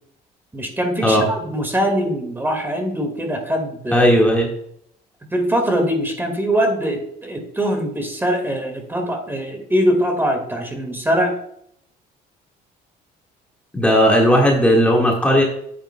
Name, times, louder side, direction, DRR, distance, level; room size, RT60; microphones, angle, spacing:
voice 1, 0.5-4.1 5.3-11.4, equal, 10° right, 4 dB, 1.9 m, -22 dB
voice 2, 3.9-4.5 13.7-15.4, equal, 5° left, -2 dB, 1.7 m, -15 dB
10.5 x 8.3 x 2.2 m, 0.69 s
cardioid pair, 110°, 17 cm